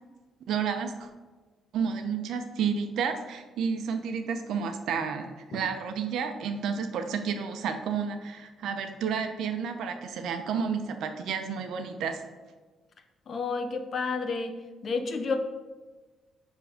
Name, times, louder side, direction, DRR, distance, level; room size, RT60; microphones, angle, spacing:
voice 1, 0.5-1.1 1.7-12.2, right 6 dB, 75° right, 6 dB, 0.8 m, -31 dB
voice 2, 13.3-14.5 14.8-15.4, left 4 dB, 50° left, 7 dB, 0.9 m, -30 dB
9.6 x 3.8 x 5.1 m, 1.3 s
cardioid pair, 90°, 0 cm